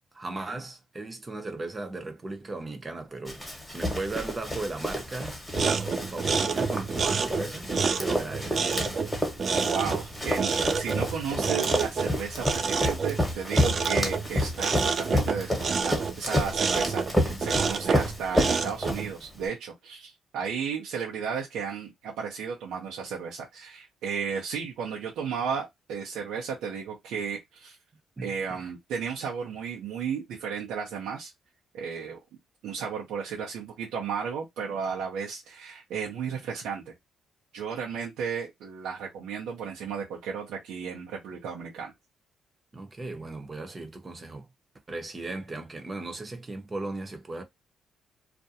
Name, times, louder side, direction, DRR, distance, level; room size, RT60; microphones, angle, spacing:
voice 1, 0.1-8.8 16.7-17.0 28.2-28.7 42.7-44.5 44.9-47.4, right 2 dB, 25° right, 0.8 m, -37 dB
Run, 3.3-19.4, left 1 dB, 5° left, 1.1 m, -30 dB
sound 1, 5.5-19.1, right 5 dB, 45° right, 0.4 m, -29 dB
voice 2, 9.6-27.8 28.2-31.3 31.7-32.2 32.6-36.9 37.5-41.9, right 6 dB, 85° right, 0.7 m, -34 dB
2.5 x 2.2 x 2.7 m
cardioid pair, 90°, 0 cm